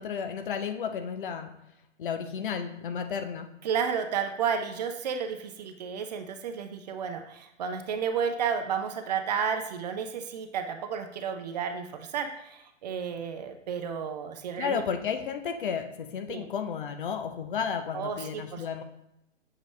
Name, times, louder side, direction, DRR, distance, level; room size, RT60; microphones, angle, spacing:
voice 1, 0.0-1.5 2.0-3.5 14.6-18.8, left 7 dB, 45° left, 8 dB, 0.6 m, -32 dB
voice 2, 3.6-14.8 16.3-16.5 17.9-18.6, right 7 dB, 35° right, 6 dB, 0.6 m, -32 dB
7.3 x 5.0 x 3.1 m, 0.85 s
figure-of-eight pair, 120°, 36 cm